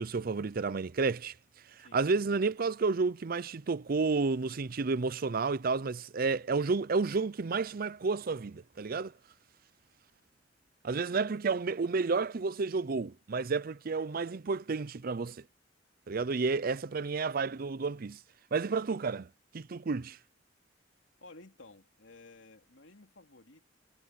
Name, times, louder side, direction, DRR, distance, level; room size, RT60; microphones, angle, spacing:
voice 1, 0.0-1.3 1.8-9.1 10.8-15.4 16.1-18.2 18.5-19.3 19.5-20.2, right 4 dB, 50° right, 0.5 m, -31 dB
voice 2, 21.2-23.7, left 2 dB, 90° left, 3.1 m, -55 dB
head